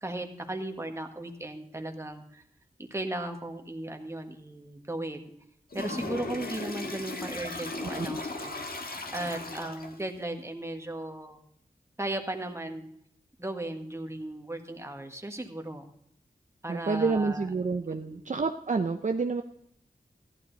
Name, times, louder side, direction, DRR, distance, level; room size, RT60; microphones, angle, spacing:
voice 1, 0.0-2.4 2.9-5.3 5.7-8.6 9.1-11.4 12.0-12.9 13.4-15.9 16.6-17.5 17.9-18.3, right 1 dB, 15° right, 4 dB, 1.6 m, -36 dB
Toilet flush, 5.7-10.1, left 2 dB, 65° left, 1.8 m, -37 dB
voice 2, 16.7-19.4, right 4 dB, 50° right, 6 dB, 0.7 m, -28 dB
14.5 x 11.5 x 4.1 m, 0.71 s
wide cardioid pair, 90°, 16 cm